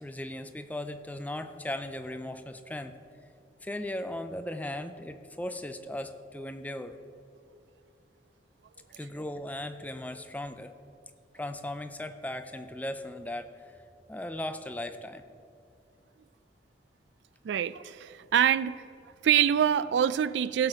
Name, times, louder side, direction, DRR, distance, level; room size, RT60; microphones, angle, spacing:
voice 1, 0.0-3.0 3.6-7.0 9.0-10.7 11.3-13.8 14.1-15.2, left 1 dB, 10° left, 9 dB, 0.4 m, -37 dB
voice 2, 17.4-18.8 19.2-20.7, right 9 dB, 75° right, 17 dB, 0.3 m, -25 dB
16.5 x 6.6 x 4.9 m, 2.5 s
head